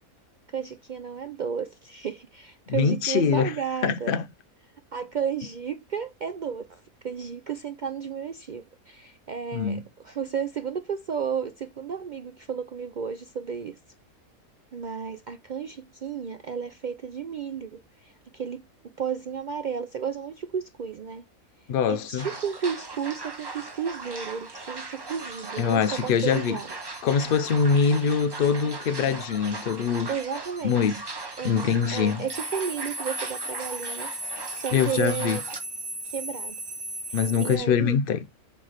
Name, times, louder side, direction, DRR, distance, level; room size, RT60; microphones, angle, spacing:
voice 1, 0.5-4.1 4.9-13.8 14.7-18.6 19.0-21.2 21.9-26.8 30.1-31.0 31.4-34.1 34.5-35.4 36.0-36.6 37.1-38.0, right 7 dB, 85° right, 0.4 m, -33 dB
voice 2, 2.7-3.5 3.8-4.2 9.5-9.8 21.7-22.3 25.6-26.6 27.0-30.1 30.6-30.9 31.4-32.2 34.7-35.4 37.1-38.2, left 6 dB, 55° left, 0.6 m, -23 dB
sound 1, 22.2-35.6, right 3 dB, 25° right, 0.6 m, -39 dB
sound 2, 25.1-37.6, right 2 dB, 40° right, 1.3 m, -38 dB
7.8 x 3.3 x 5.7 m
omnidirectional pair, 1.5 m